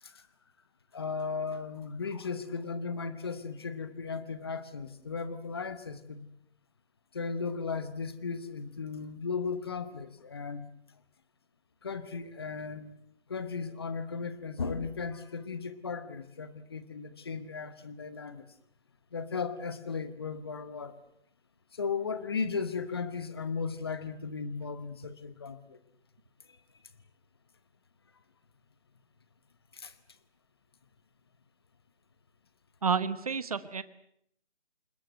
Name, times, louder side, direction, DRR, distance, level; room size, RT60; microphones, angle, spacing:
voice 1, 0.9-6.3 7.1-10.7 11.8-13.0 13.3-18.4 19.1-21.0 21.7-25.8 29.7-29.9, left 5 dB, 20° left, 14 dB, 1.0 m, -36 dB
voice 2, 32.8-33.8, right 5 dB, 35° right, 15 dB, 1.0 m, -30 dB
28.5 x 20.0 x 7.9 m, 0.72 s
hypercardioid pair, 170°, 33 cm